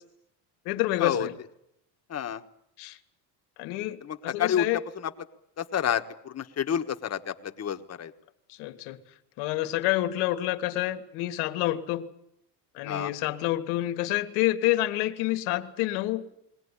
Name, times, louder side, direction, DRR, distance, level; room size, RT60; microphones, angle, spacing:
voice 1, 0.7-1.3 2.8-3.0 3.6-4.8 8.5-9.0 9.4-12.1 12.7-16.4, left 15 dB, 90° left, 8 dB, 1.8 m, -28 dB
voice 2, 2.1-2.4 4.0-5.1 5.6-8.1 12.8-13.1, left 9 dB, 35° left, 7 dB, 1.4 m, -29 dB
21.5 x 18.0 x 9.9 m, 0.79 s
cardioid pair, 115°, 45 cm